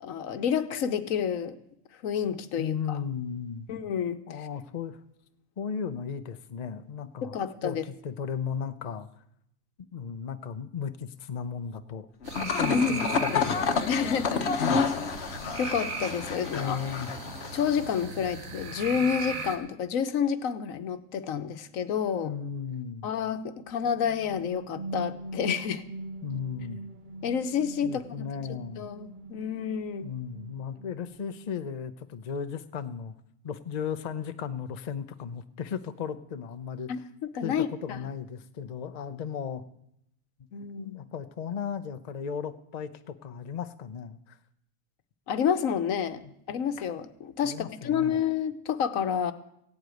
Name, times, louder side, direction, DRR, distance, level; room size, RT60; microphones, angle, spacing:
voice 1, 0.0-1.6 2.0-3.0 3.7-4.5 7.2-7.8 12.7-13.1 13.9-14.7 15.6-16.8 17.5-22.3 23.0-25.8 27.2-28.3 28.8-30.1 36.9-38.0 40.5-41.0 45.3-49.3, left 7 dB, 85° left, 11 dB, 1.3 m, -29 dB
voice 2, 2.6-3.7 4.3-5.0 5.6-7.4 7.6-9.1 9.9-12.1 12.3-13.7 14.6-14.8 16.5-17.1 22.2-23.1 26.2-26.8 27.8-28.9 30.0-33.1 33.4-36.9 37.4-39.6 40.8-44.4 46.2-46.3 47.4-48.2, left 7 dB, 40° left, 10 dB, 0.6 m, -35 dB
sound 1, 12.2-18.0, left 5 dB, 55° left, 1.2 m, -29 dB
sound 2, 12.3-19.6, right 4 dB, 85° right, 1.8 m, -38 dB
sound 3, 23.8-31.6, right 2 dB, 45° right, 0.7 m, -42 dB
15.5 x 8.1 x 9.1 m, 0.79 s
omnidirectional pair, 1.4 m